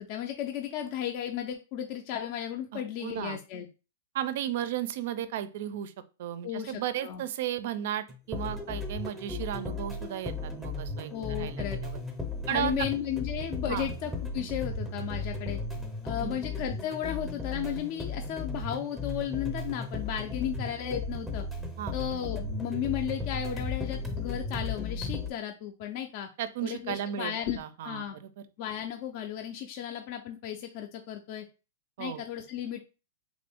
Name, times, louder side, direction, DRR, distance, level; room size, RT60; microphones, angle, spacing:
voice 1, 0.0-3.7 6.4-7.2 11.1-11.8 12.5-15.6 16.0-21.4 21.9-26.3 26.6-28.2 28.6-31.5 32.0-32.8, left 10 dB, 40° left, 4 dB, 0.4 m, -34 dB
voice 2, 2.7-3.4 4.1-5.9 6.2-12.0 12.5-12.9 13.7-13.9 16.2-16.4 21.8-21.9 26.4-28.3 32.0-32.2, right 11 dB, 55° right, 13 dB, 0.4 m, -34 dB
sound 1, 8.1-25.3, left 3 dB, ahead, 0.6 m, -35 dB
3.5 x 2.5 x 3.5 m, 0.32 s
hypercardioid pair, 150°, 0 cm